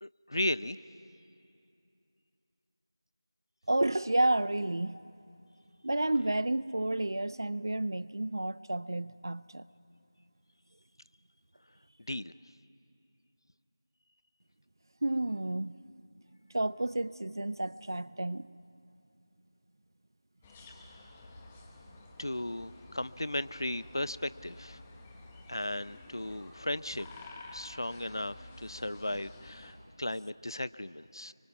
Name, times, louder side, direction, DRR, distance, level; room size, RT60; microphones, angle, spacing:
voice 1, 0.0-0.8 12.1-12.3 22.2-24.8 25.5-27.1 27.5-31.3, left 1 dB, 75° left, 0.6 m, -36 dB
voice 2, 3.7-5.0 5.8-9.6 15.0-15.8 16.5-18.5, right 1 dB, 60° right, 0.5 m, -31 dB
sound 1, 20.4-29.7, left 2 dB, 10° left, 1.0 m, -51 dB
25.5 x 24.0 x 5.9 m
figure-of-eight pair, 170°, 2 cm